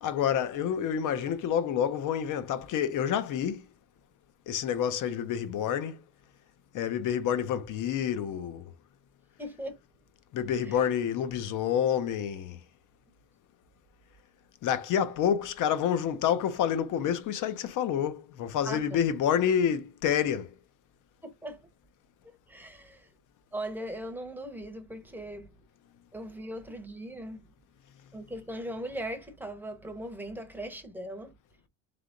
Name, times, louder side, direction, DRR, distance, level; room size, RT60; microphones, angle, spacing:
voice 1, 0.0-3.7 4.5-6.0 6.7-8.7 10.3-12.6 14.6-20.5, left 9 dB, 55° left, 0.7 m, -28 dB
voice 2, 9.4-9.8 10.6-10.9 18.7-18.8 21.2-21.6 22.5-23.1 23.5-25.5 26.1-27.4 28.1-31.3, right 1 dB, 5° right, 0.8 m, -39 dB
3.4 x 3.3 x 3.8 m
cardioid pair, 130°, 38 cm